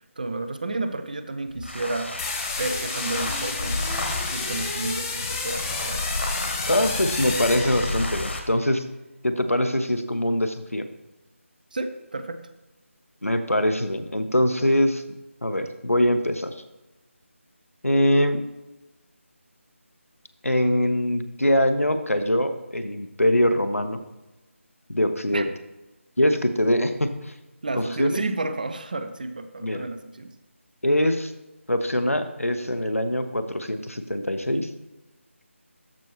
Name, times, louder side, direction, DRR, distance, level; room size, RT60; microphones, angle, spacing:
voice 1, 0.2-2.2 2.6-6.0 11.7-12.4 25.3-25.4 27.6-30.3, right 2 dB, 40° right, 10 dB, 0.6 m, -31 dB
sound 1, 1.5-8.5, left 2 dB, 60° left, 1.4 m, -31 dB
sound 2, 2.2-8.3, left 4 dB, 15° left, 0.6 m, -32 dB
voice 2, 6.7-8.8 9.2-10.9 13.2-15.0 15.4-16.6 17.8-18.4 20.4-24.0 24.9-25.5 26.2-27.3 27.7-28.2 29.6-29.9 30.8-31.3 31.7-34.7, left 1 dB, 90° left, 8 dB, 0.9 m, -23 dB
13.5 x 5.4 x 3.0 m, 1.0 s
figure-of-eight pair, 160°, 7 cm